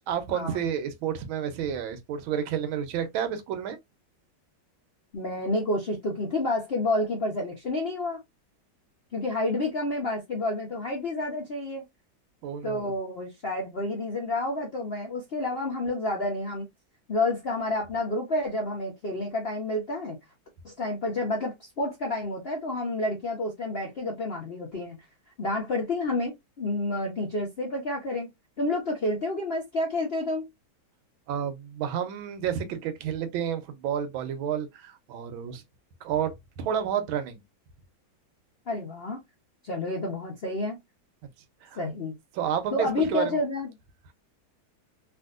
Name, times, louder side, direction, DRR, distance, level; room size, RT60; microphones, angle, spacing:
voice 1, 0.1-3.8 12.4-12.9 31.3-35.6 36.0-37.4 41.6-41.8 42.3-43.4, right 8 dB, 90° right, 1.5 m, -30 dB
voice 2, 5.1-8.2 9.1-11.8 12.6-16.6 17.1-20.2 20.6-25.0 25.4-28.3 28.6-30.4 38.7-39.2 39.6-40.8 41.8-42.1 42.7-43.7, left 2 dB, 65° left, 0.6 m, -29 dB
3.5 x 2.6 x 2.4 m
omnidirectional pair, 2.2 m